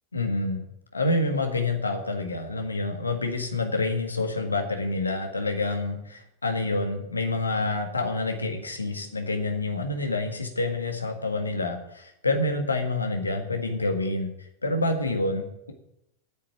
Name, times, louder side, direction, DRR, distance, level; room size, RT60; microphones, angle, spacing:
voice 1, 0.1-0.6 0.9-14.3 14.6-15.7, left 2 dB, 80° left, 5 dB, 1.8 m, -27 dB
8.8 x 7.5 x 9.0 m, 0.84 s
figure-of-eight pair, 90°, 0 cm